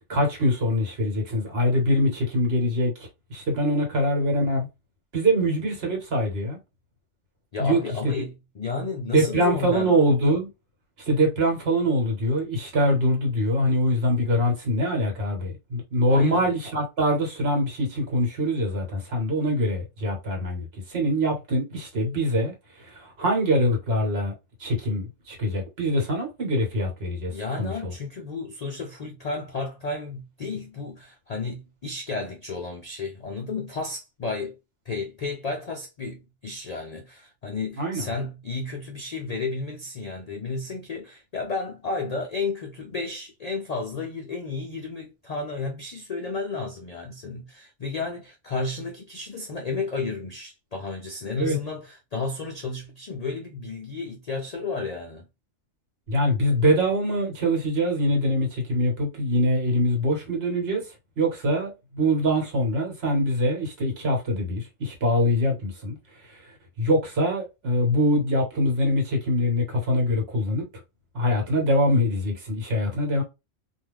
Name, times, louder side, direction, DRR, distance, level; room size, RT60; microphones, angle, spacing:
voice 1, 0.1-4.7 5.1-6.6 7.6-8.1 9.1-10.5 11.0-24.3 24.6-27.9 37.8-38.1 51.4-51.6 56.1-66.0 66.2-70.7 71.1-73.2, equal, 55° right, 1.3 m, -24 dB
voice 2, 7.5-10.0 16.1-16.6 27.3-34.6 34.9-55.3, left 3 dB, 65° left, 0.4 m, -32 dB
2.4 x 2.2 x 3.3 m
omnidirectional pair, 1.3 m